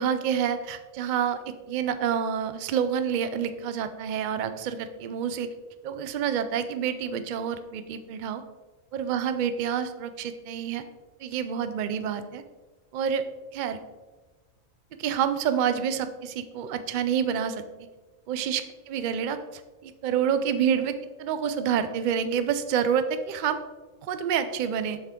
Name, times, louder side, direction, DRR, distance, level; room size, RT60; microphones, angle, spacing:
voice 1, 0.0-5.5 5.8-8.4 8.9-10.8 11.2-12.4 12.9-13.3 13.5-13.8 15.0-17.6 18.3-18.6 18.9-23.6 24.0-25.0, right 8 dB, 75° right, 10 dB, 0.4 m, -28 dB
7.0 x 5.7 x 3.7 m, 1.2 s
omnidirectional pair, 1.4 m